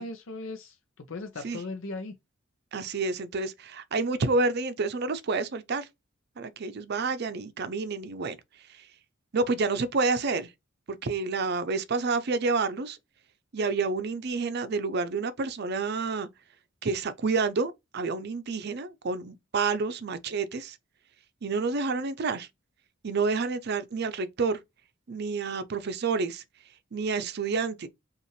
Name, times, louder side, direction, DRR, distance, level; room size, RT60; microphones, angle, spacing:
voice 1, 0.0-2.1, left 2 dB, 70° left, 0.6 m, -38 dB
voice 2, 2.7-5.9 6.4-8.4 8.7-8.9 9.3-10.5 10.9-13.0 13.5-16.3 16.8-20.8 21.4-22.5 23.0-24.6 25.1-26.4 26.9-27.9, right 4 dB, 55° right, 0.5 m, -29 dB
5.5 x 2.5 x 3.0 m
head